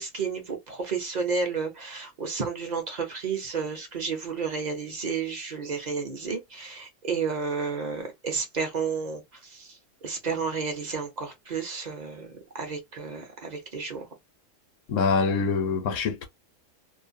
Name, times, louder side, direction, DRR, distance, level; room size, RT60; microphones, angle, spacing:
voice 1, 0.0-9.8 10.0-14.1, right 5 dB, 45° right, 0.7 m, -31 dB
voice 2, 14.9-16.3, left 4 dB, 75° left, 1.0 m, -25 dB
2.5 x 2.0 x 2.5 m
omnidirectional pair, 1.3 m